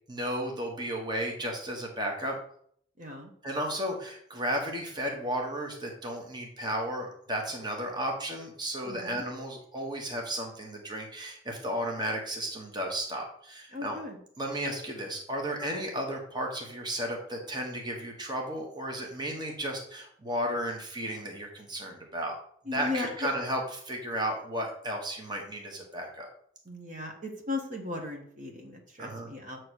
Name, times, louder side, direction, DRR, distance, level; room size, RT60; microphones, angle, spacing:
voice 1, 0.1-2.3 3.4-14.0 14.4-22.3 22.7-23.6 23.8-26.3 29.0-29.3, equal, 20° right, 1 dB, 1.2 m, -34 dB
voice 2, 3.0-3.3 8.8-9.2 13.7-14.2 22.6-23.1 26.6-29.6, left 2 dB, 40° right, 2 dB, 1.2 m, -37 dB
8.4 x 3.1 x 6.3 m, 0.65 s
head